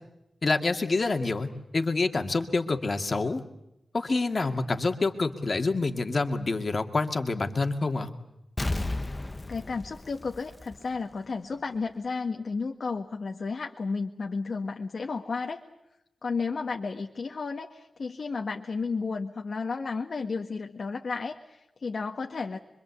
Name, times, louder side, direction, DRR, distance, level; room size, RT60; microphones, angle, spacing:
voice 1, 0.4-3.4 3.9-8.1, left 3 dB, 35° left, 6 dB, 2.3 m, -27 dB
Explosion, 8.6-11.2 11.5-11.6, left 2 dB, 20° left, 1.1 m, -33 dB
voice 2, 9.5-15.6 16.2-22.6, left 4 dB, 50° left, 2 dB, 1.7 m, -33 dB
26.0 x 25.0 x 8.4 m, 0.89 s
wide cardioid pair, 155°, 0 cm